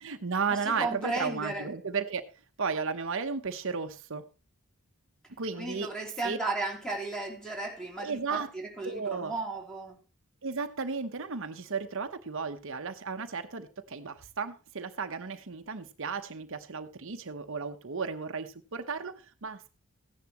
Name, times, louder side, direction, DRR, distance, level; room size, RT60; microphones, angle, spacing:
voice 1, 0.0-2.2 2.6-4.2 5.4-5.9 6.2-6.4 8.0-8.5 8.8-9.4 10.4-19.7, right 5 dB, 65° right, 1.0 m, -34 dB
voice 2, 0.6-1.7 5.6-10.0, right 2 dB, 5° left, 3.3 m, -35 dB
15.0 x 10.5 x 3.0 m
head